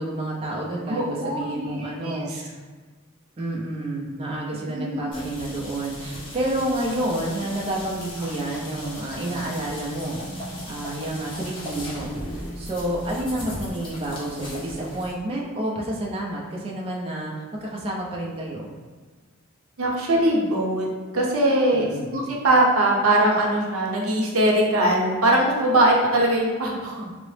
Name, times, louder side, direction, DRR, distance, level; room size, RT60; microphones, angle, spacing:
voice 1, 0.0-2.3 3.4-12.1 12.6-17.3 17.6-18.7 21.7-22.1, right 1 dB, 25° right, -4 dB, 0.4 m, -29 dB
voice 2, 0.9-2.4 4.7-5.2 19.8-20.9 21.1-27.1, right 1 dB, 90° right, -2 dB, 0.7 m, -21 dB
sound 1, 5.1-15.1, equal, 25° left, 0.7 m, -37 dB
3.7 x 2.0 x 3.1 m, 1.4 s
head